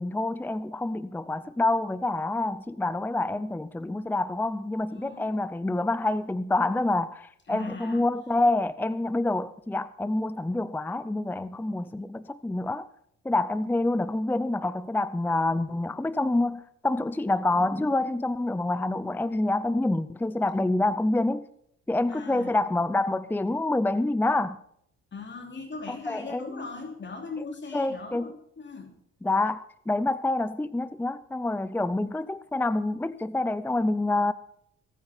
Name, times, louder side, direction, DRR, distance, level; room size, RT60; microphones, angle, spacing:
voice 1, 0.0-12.9 13.2-21.4 21.9-24.6 25.9-26.6 27.7-28.3 29.2-34.3, left 2 dB, 5° left, 0.6 m, -27 dB
voice 2, 4.9-5.3 7.5-8.0 22.1-22.6 25.1-28.9, left 4 dB, 40° left, 3.0 m, -39 dB
23.0 x 9.5 x 4.4 m
cardioid pair, 90°, 30 cm